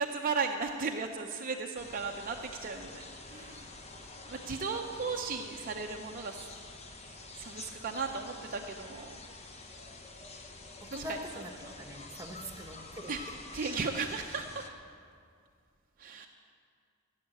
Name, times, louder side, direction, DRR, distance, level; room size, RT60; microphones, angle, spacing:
voice 1, 0.0-3.8 4.2-6.5 7.3-9.2 10.9-11.7 12.3-12.6 13.1-14.7 16.0-16.3, right 4 dB, 40° right, 2 dB, 0.6 m, -36 dB
sound 1, 1.7-14.7, left 3 dB, 30° left, 1.0 m, -48 dB
voice 2, 10.8-11.5 11.8-13.1, equal, 15° right, 4 dB, 1.2 m, -43 dB
16.0 x 7.4 x 8.8 m, 2.2 s
head